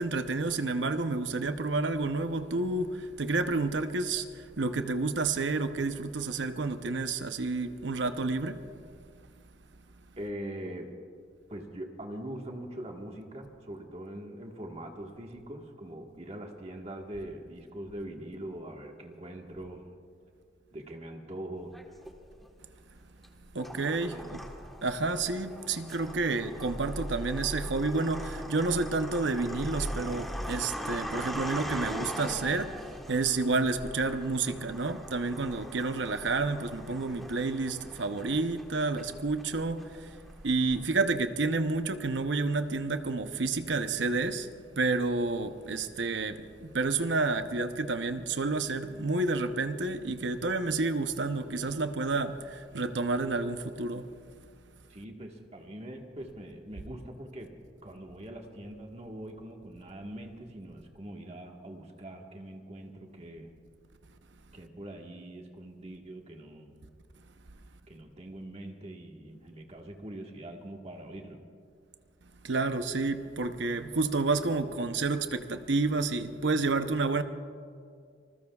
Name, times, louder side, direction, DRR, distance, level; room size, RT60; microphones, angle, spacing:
voice 1, 0.0-4.3 4.6-8.6 23.5-24.4 24.8-32.7 33.1-40.1 40.4-44.5 44.8-54.1 72.4-77.2, right 3 dB, 70° right, 0.8 m, -30 dB
voice 2, 10.2-10.9 11.5-19.8 20.7-21.7 24.1-24.3 54.9-57.5 57.8-63.5 64.5-66.8 67.9-71.4, right 1 dB, 35° right, 1.5 m, -42 dB
sound 1, 21.7-22.5 23.2-41.0, equal, ahead, 1.2 m, -40 dB
27.0 x 20.5 x 2.4 m
head